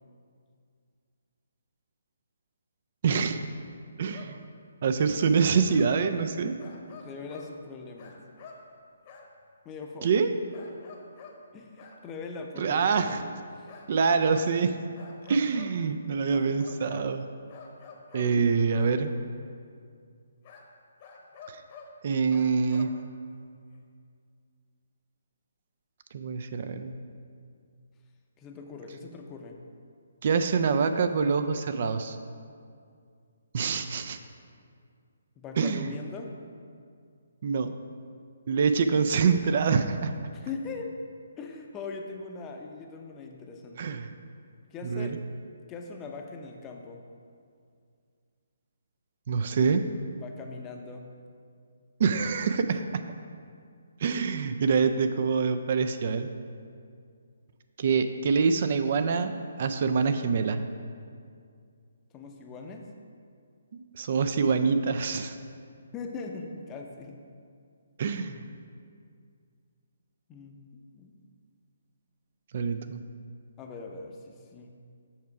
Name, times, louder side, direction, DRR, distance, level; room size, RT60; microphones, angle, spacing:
voice 1, 3.0-3.4 4.0-4.4 4.8-6.6 10.0-10.3 12.6-13.2 13.9-14.7 15.3-17.3 18.1-19.1 21.5-21.6 22.0-22.9 26.1-27.0 30.2-32.2 33.5-34.2 35.6-35.9 37.4-37.7 38.5-40.1 43.8-44.1 44.8-45.1 49.3-49.8 52.0-53.0 54.0-56.3 57.8-60.6 63.7-65.3 68.0-68.4 72.5-73.0, right 5 dB, 50° right, 9 dB, 0.3 m, -25 dB
sound 1, 4.1-4.3 5.2-5.3 5.7-6.2 6.6-7.5 8.0-8.6 9.0-9.3 10.5-11.4 11.8-12.0 13.7-14.5 14.9-15.8 16.3-17.1 17.5-18.3 18.7-19.0 20.4-20.7 21.0-22.0 22.3-23.0 23.7-23.8, left 5 dB, 35° left, 0.9 m, -48 dB
voice 2, 7.0-8.2 9.6-10.2 11.5-13.1 13.6-13.7 18.3-18.5 28.4-29.6 35.4-36.3 40.3-40.9 41.4-44.0 44.7-45.1 45.7-47.0 50.2-51.1 62.1-62.8 65.9-67.2 70.3-70.6 70.9-71.2 73.6-74.7, left 4 dB, 20° left, 3 dB, 0.6 m, -41 dB
7.2 x 4.6 x 4.7 m, 2.2 s
figure-of-eight pair, 140°, 0 cm